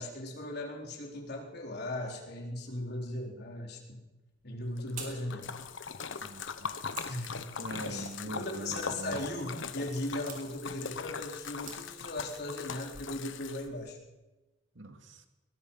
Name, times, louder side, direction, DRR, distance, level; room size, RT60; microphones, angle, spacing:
voice 1, 0.0-3.8 4.4-5.6 7.1-7.3 7.9-14.0, left 1 dB, 60° left, 0 dB, 4.3 m, -38 dB
sound 1, 4.3-12.3, right 5 dB, 45° right, 5.4 m, -52 dB
Splash splatter, 4.8-13.9, left 5 dB, 80° left, 1.1 m, -40 dB
voice 2, 6.2-6.7 7.6-9.2 14.8-15.2, right 2 dB, 75° right, 6 dB, 2.3 m, -43 dB
22.0 x 21.5 x 5.8 m, 1.1 s
head